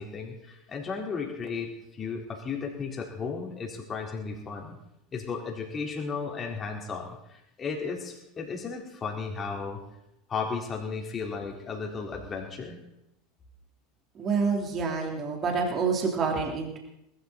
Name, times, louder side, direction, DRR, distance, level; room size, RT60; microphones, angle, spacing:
voice 1, 0.0-4.8 5.1-9.8 10.3-12.8, left 5 dB, 30° left, 1 dB, 4.1 m, -34 dB
voice 2, 14.1-16.8, right 5 dB, 35° right, 1 dB, 3.6 m, -27 dB
20.5 x 13.5 x 4.1 m, 0.85 s
figure-of-eight pair, 80°, 0 cm